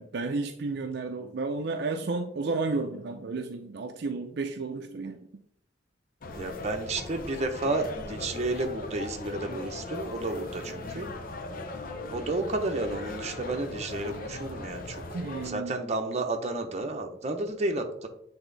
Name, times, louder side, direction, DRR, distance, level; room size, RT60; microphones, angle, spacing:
voice 1, 0.0-5.2 15.1-15.7, right 3 dB, 60° right, 5 dB, 0.5 m, -32 dB
sound 1, 6.2-15.5, left 2 dB, 50° left, 0.7 m, -39 dB
voice 2, 6.3-11.1 12.1-15.0 15.4-18.1, right 2 dB, 40° right, 4 dB, 0.8 m, -31 dB
7.9 x 3.5 x 4.0 m, 0.72 s
head